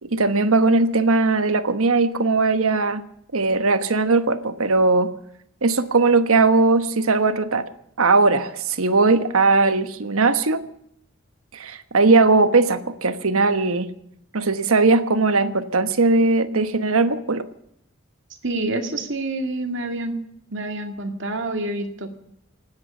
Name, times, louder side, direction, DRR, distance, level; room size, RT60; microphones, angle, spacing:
voice 1, 0.0-3.0 3.3-5.1 5.6-7.7 8.0-10.6 11.5-13.9 14.3-17.4, right 3 dB, 90° right, 10 dB, 1.2 m, -19 dB
voice 2, 18.4-20.1 20.5-22.1, right 2 dB, 60° right, 5 dB, 2.1 m, -27 dB
26.0 x 9.6 x 5.5 m, 0.75 s
head